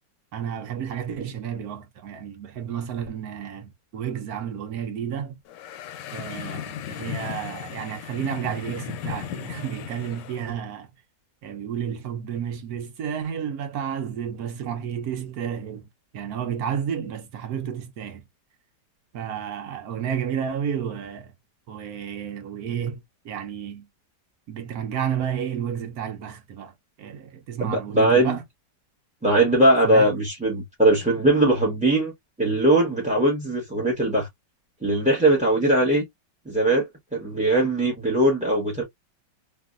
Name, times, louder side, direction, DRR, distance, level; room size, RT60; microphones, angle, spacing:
voice 1, 0.3-5.4 6.1-10.9 11.4-15.9 16.1-18.2 19.1-21.3 21.7-23.9 24.5-28.4 29.8-30.1, right 8 dB, 65° right, 1.1 m, -31 dB
sound 1, 5.5-10.5, left 10 dB, 80° left, 1.2 m, -36 dB
voice 2, 27.6-28.4 29.2-32.1 32.4-34.3 34.8-36.0 36.5-38.8, right 1 dB, 5° right, 0.6 m, -20 dB
3.0 x 2.5 x 2.4 m
omnidirectional pair, 2.0 m